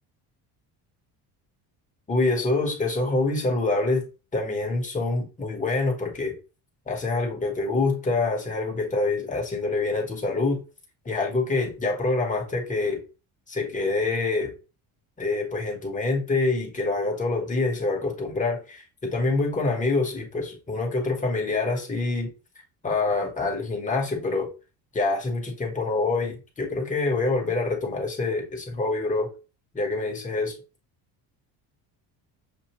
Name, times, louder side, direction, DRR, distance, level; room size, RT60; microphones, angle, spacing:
voice 1, 2.1-4.0 4.3-6.3 6.9-10.6 11.0-13.0 13.5-14.5 15.2-22.3 22.8-24.5 24.9-29.3 29.7-30.5, left 3 dB, 20° left, 1 dB, 1.2 m, -26 dB
7.0 x 2.5 x 2.9 m, 0.32 s
cardioid pair, 155°, 43 cm